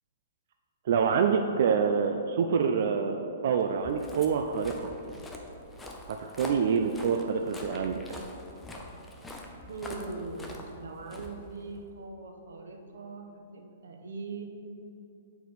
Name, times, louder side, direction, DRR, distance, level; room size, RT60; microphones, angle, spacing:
voice 1, 0.8-4.9 6.1-8.2, right 6 dB, 55° right, 5 dB, 0.3 m, -27 dB
Walk footsteps, 3.7-12.0, left 1 dB, 5° left, 0.5 m, -44 dB
voice 2, 9.7-14.5, right 3 dB, 90° right, 4 dB, 0.9 m, -41 dB
8.3 x 4.6 x 4.0 m, 2.9 s
hypercardioid pair, 165°, 0 cm